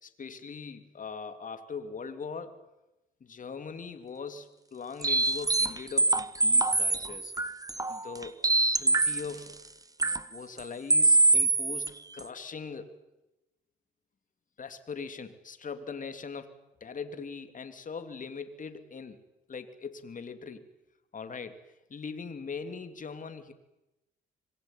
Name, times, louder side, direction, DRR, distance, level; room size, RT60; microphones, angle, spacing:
voice 1, 0.0-2.7 3.2-7.3 7.9-8.4 8.8-9.5 10.3-13.0 14.6-16.5 16.8-19.2 19.5-20.6 21.1-21.6 21.9-23.5, left 5 dB, 40° left, 9 dB, 3.0 m, -41 dB
sound 1, 5.0-9.4 10.0-10.2 10.6-10.7 10.9-11.9 12.2-12.3, right 2 dB, 15° right, 1.4 m, -24 dB
25.5 x 21.5 x 9.2 m, 0.96 s
cardioid pair, 90°, 20 cm